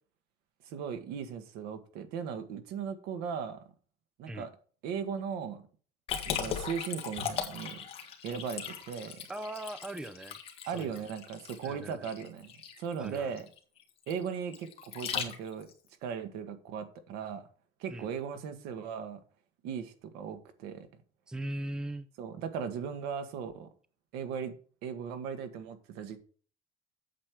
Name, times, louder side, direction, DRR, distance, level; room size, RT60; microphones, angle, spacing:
voice 1, 0.7-3.6 4.2-4.5 4.8-5.6 6.3-7.8 8.2-9.2 10.7-12.5 12.8-13.5 14.1-14.7 14.9-15.7 16.0-17.4 17.8-19.2 19.6-20.9 22.2-23.7 24.1-24.5 24.8-26.2, right 7 dB, 80° right, 1.8 m, -37 dB
Liquid, 6.1-15.7, left 7 dB, 35° left, 1.7 m, -38 dB
voice 2, 9.3-10.4 10.7-11.0 11.6-12.1 13.0-13.4 17.9-18.1 21.3-22.1, right 1 dB, 5° right, 0.5 m, -40 dB
8.6 x 7.6 x 4.8 m
cardioid pair, 175°, 16 cm